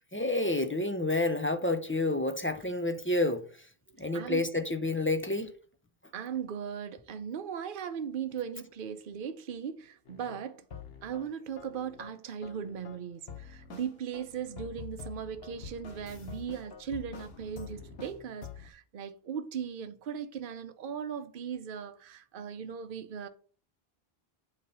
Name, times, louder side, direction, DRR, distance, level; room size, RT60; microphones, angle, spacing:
voice 1, 0.1-3.7 4.0-5.5, left 2 dB, 15° left, 0.5 m, -29 dB
voice 2, 4.1-4.5 6.1-10.6 11.0-23.3, right 8 dB, 60° right, 0.8 m, -38 dB
sound 1, 10.1-11.3 11.6-13.0 13.3-18.7, left 6 dB, 80° left, 1.3 m, -46 dB
8.4 x 3.1 x 5.4 m
omnidirectional pair, 1.0 m